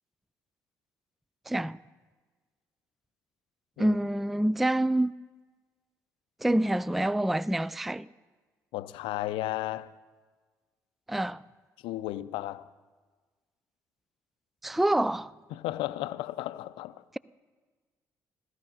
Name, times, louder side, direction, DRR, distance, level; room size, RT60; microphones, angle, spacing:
voice 1, 1.5-1.8 3.8-5.1 6.4-8.1 11.1-11.4 14.6-15.3, right 1 dB, ahead, 0.3 m, -26 dB
voice 2, 8.7-9.9 11.8-12.7 15.5-17.0, left 15 dB, 65° left, 0.5 m, -34 dB
16.0 x 13.0 x 5.3 m
figure-of-eight pair, 45°, 10 cm